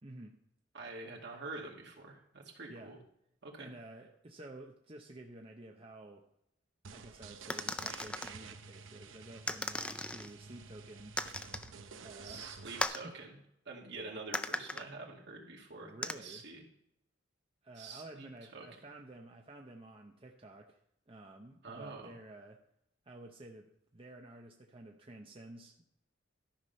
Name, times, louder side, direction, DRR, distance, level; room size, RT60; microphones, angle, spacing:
voice 1, 0.0-0.4 2.7-2.9 3.6-6.3 6.9-11.2 12.0-12.7 13.0-13.1 13.9-14.2 15.8-16.5 17.6-20.8 21.1-22.6 23.0-25.8, right 2 dB, 30° right, 1 dB, 0.8 m, -51 dB
voice 2, 0.7-3.0 3.4-3.7 12.2-13.4 13.7-16.6 17.8-18.7 21.6-22.1, right 3 dB, 60° right, 0 dB, 2.2 m, -46 dB
sound 1, 6.8-12.8, right 5 dB, 85° right, 0.8 m, -51 dB
sound 2, 7.5-8.3 9.5-10.3 11.2-11.7 12.8-13.1 14.3-14.8 16.0-16.1, left 1 dB, 5° left, 0.4 m, -37 dB
13.0 x 6.1 x 5.4 m, 0.76 s
head